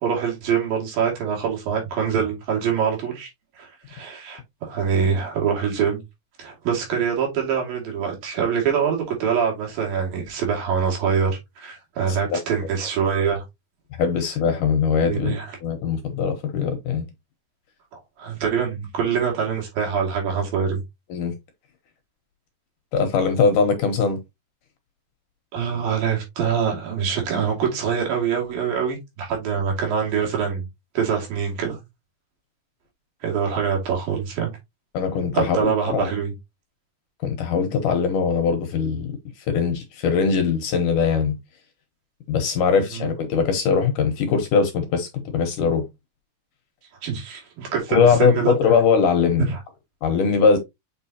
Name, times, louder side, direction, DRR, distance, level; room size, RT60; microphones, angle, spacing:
voice 1, 0.0-3.3 3.6-6.0 6.4-13.4 15.0-15.5 17.9-20.8 25.5-30.7 31.0-31.8 33.2-34.5 35.3-36.3 43.0-43.1 47.0-48.5 49.5-49.6, right 7 dB, 65° right, 4.1 m, -24 dB
voice 2, 12.1-12.4 14.0-17.0 21.1-21.3 22.9-24.2 34.9-36.1 37.2-41.4 42.3-45.8 47.9-49.5 50.0-50.6, left 5 dB, 70° left, 2.3 m, -21 dB
7.4 x 5.2 x 2.8 m
omnidirectional pair, 4.4 m